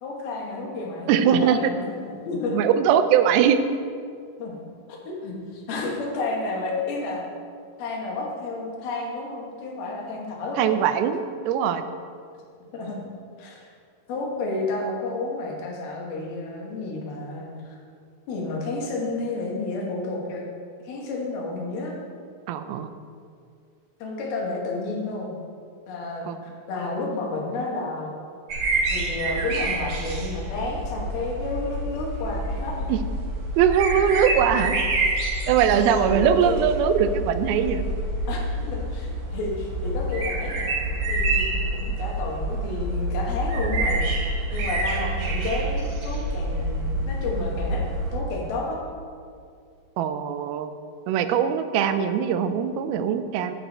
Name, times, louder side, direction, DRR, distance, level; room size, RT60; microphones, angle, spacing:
voice 1, 0.0-1.1 1.4-2.6 4.4-4.6 4.9-7.2 7.8-10.9 12.7-13.0 13.4-13.7 14.1-17.8 18.3-20.4 20.8-22.0 24.0-25.3 25.9-26.3 26.7-28.1 28.9-32.9 35.7-36.6 38.3-44.1 44.5-47.8 48.1-48.8, left 3 dB, 85° left, -1 dB, 3.3 m, -31 dB
voice 2, 1.1-1.7 2.5-3.6 10.6-11.2 11.5-11.9 22.5-22.9 26.3-26.4 32.9-33.0 33.6-34.8 35.5-37.8 50.0-50.7 51.1-53.5, right 8 dB, 90° right, 9 dB, 2.5 m, -21 dB
sound 1, 28.5-48.2, right 2 dB, 65° right, 2.0 m, -27 dB
9.0 x 8.1 x 4.2 m, 2.2 s
omnidirectional pair, 4.3 m